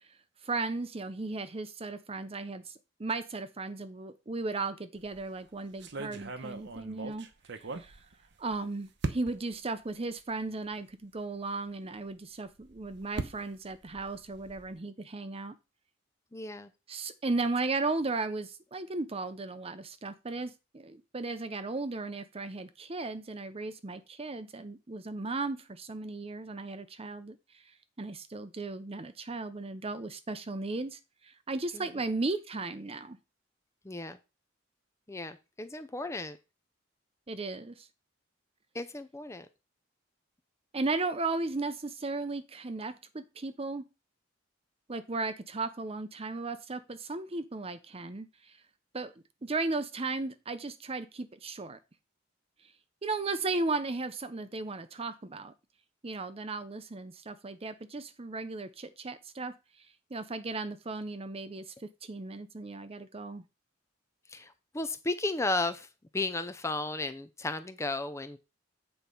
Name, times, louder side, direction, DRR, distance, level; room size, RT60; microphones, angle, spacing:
voice 1, 0.4-2.7 3.0-7.3 7.6-8.0 8.4-15.5 16.9-27.6 28.0-33.2 37.3-37.9 40.7-43.8 44.9-48.5 48.9-49.1 49.4-51.8 53.0-55.5 56.0-59.5 60.1-63.4, right 3 dB, 30° right, 12 dB, 0.7 m, -36 dB
sound 1, 5.0-5.3 5.8-8.6 9.0-9.6 10.3-10.4 10.7-10.8 12.5-14.8, right 3 dB, 60° right, 0.9 m, -39 dB
voice 2, 16.3-16.7 31.7-31.9 33.8-34.2 35.1-36.4 38.7-39.5 64.3-65.9 66.1-68.4, left 2 dB, 15° left, 11 dB, 0.6 m, -34 dB
8.4 x 4.4 x 5.4 m, 0.28 s
head